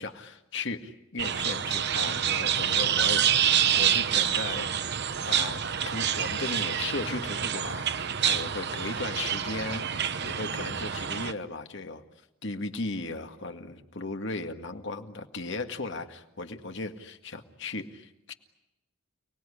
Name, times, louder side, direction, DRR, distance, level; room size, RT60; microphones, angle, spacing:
voice 1, 0.0-3.5 3.7-4.7 5.2-12.0 12.4-18.3, left 3 dB, 60° left, 6 dB, 2.0 m, -36 dB
sound 1, 1.2-11.3, right 9 dB, 55° right, 1.0 m, -27 dB
30.0 x 20.0 x 10.0 m, 0.91 s
head